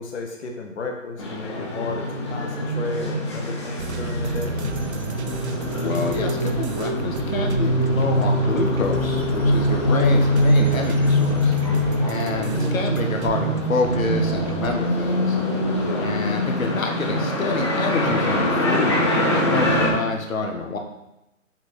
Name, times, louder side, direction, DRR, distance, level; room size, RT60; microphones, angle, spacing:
voice 1, 0.0-4.5 15.8-16.2, left 3 dB, 55° left, 1 dB, 1.2 m, -33 dB
sound 1, 1.2-19.9, left 1 dB, 20° left, 0.8 m, -23 dB
sound 2, 3.8-14.8, right 6 dB, 55° right, 0.6 m, -32 dB
voice 2, 5.6-11.5 12.0-15.4 16.0-20.8, left 3 dB, 85° left, 2 dB, 1.4 m, -27 dB
6.1 x 4.7 x 4.3 m, 0.91 s
hypercardioid pair, 170°, 40 cm